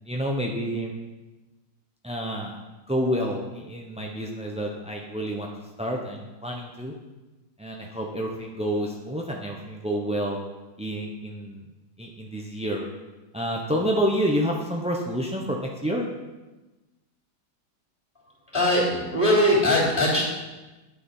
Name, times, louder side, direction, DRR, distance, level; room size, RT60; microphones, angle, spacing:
voice 1, 0.0-0.9 2.0-2.6 2.9-5.5 5.8-6.9 7.6-10.4 10.8-11.7 12.0-12.9 13.3-16.1, equal, 10° right, 0 dB, 0.3 m, -28 dB
voice 2, 18.5-20.2, left 1 dB, 15° left, -4 dB, 3.9 m, -21 dB
9.4 x 8.3 x 5.5 m, 1.1 s
omnidirectional pair, 2.0 m